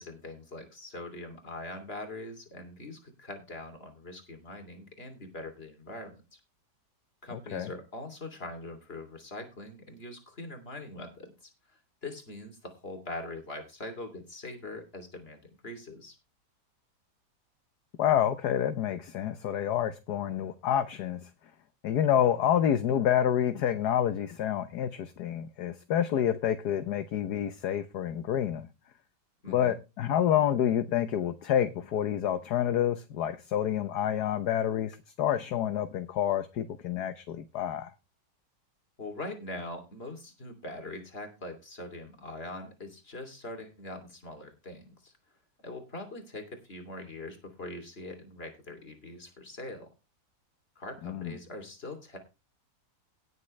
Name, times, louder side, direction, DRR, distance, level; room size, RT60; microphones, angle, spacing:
voice 1, 0.0-6.2 7.2-16.2 29.4-29.8 39.0-45.1 45.6-49.9 50.7-52.2, left 2 dB, 35° left, 3.2 m, -42 dB
voice 2, 7.3-7.7 18.0-21.2 21.8-28.7 29.5-37.9 51.0-51.3, left 10 dB, 70° left, 1.4 m, -28 dB
18.0 x 7.5 x 3.2 m
omnidirectional pair, 1.9 m